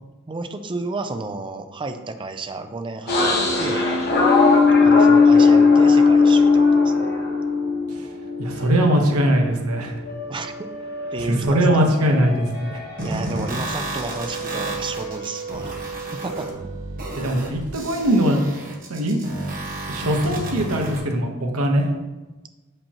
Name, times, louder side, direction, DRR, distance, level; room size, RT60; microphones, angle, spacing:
voice 1, 0.3-3.9 4.8-7.1 10.3-10.7 11.1-12.0 13.0-15.7 16.1-16.5, right 3 dB, 20° right, 7 dB, 0.4 m, -32 dB
sound 1, 3.1-9.0 9.5-13.7 13.9-16.5, left 4 dB, 50° left, 1.2 m, -19 dB
voice 2, 8.4-9.9 11.2-12.8 17.1-18.4 18.9-19.2 19.9-21.9, equal, 90° right, 2 dB, 1.0 m, -21 dB
sound 2, 13.0-21.0, right 1 dB, 40° right, 1.1 m, -31 dB
7.2 x 5.2 x 2.8 m, 1.2 s
head